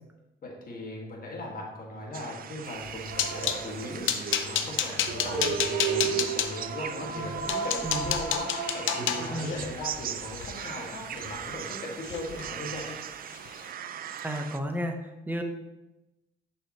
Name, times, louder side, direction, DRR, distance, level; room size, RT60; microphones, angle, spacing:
voice 1, 0.4-13.0, left 1 dB, 45° left, -1 dB, 1.8 m, -39 dB
sound 1, 2.1-14.6, right 9 dB, 50° right, 0.4 m, -40 dB
sound 2, 2.7-3.6 4.1-6.5 7.1-7.2 7.5-11.7 12.0-12.5 12.7-12.9 13.3-13.5, left 9 dB, 80° left, 0.6 m, -31 dB
sound 3, 3.1-9.5, right 5 dB, 70° right, 1.0 m, -34 dB
voice 2, 7.1-7.6 7.8-8.1 9.3-9.6 14.2-15.0 15.3-15.4, equal, 10° right, 4 dB, 0.9 m, -33 dB
7.3 x 5.5 x 3.0 m, 0.97 s
cardioid pair, 90°, 20 cm